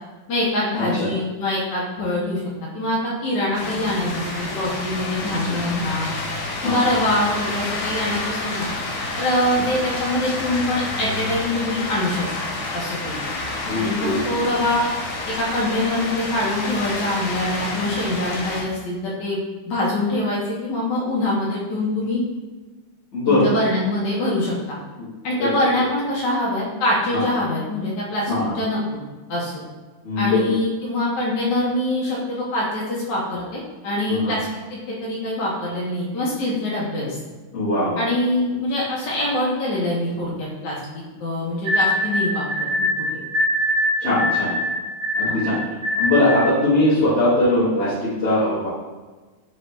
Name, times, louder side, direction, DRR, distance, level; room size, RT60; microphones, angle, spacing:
voice 1, 0.3-2.4 2.7-6.1 6.6-8.7 9.2-12.2 12.7-13.2 13.5-14.8 15.3-22.2 23.2-24.8 25.2-29.0 29.3-29.5 30.2-37.2 38.0-40.8 41.2-43.2 45.3-45.4, left 1 dB, 65° left, -5 dB, 1.3 m, -24 dB
sound 1, 3.5-18.6, left 2 dB, 90° left, 0.6 m, -29 dB
voice 2, 5.2-5.6 6.6-6.8 9.5-9.6 13.6-14.4 23.1-23.6 25.4-25.5 27.1-27.2 28.3-28.6 30.0-30.4 34.1-34.3 37.5-38.1 44.0-44.5 45.2-45.6 45.9-48.7, left 2 dB, 45° left, -12 dB, 1.1 m, -21 dB
sound 2, 41.6-46.5, left 1 dB, 55° right, 1.6 m, -22 dB
4.5 x 3.1 x 3.0 m, 1.3 s
omnidirectional pair, 2.2 m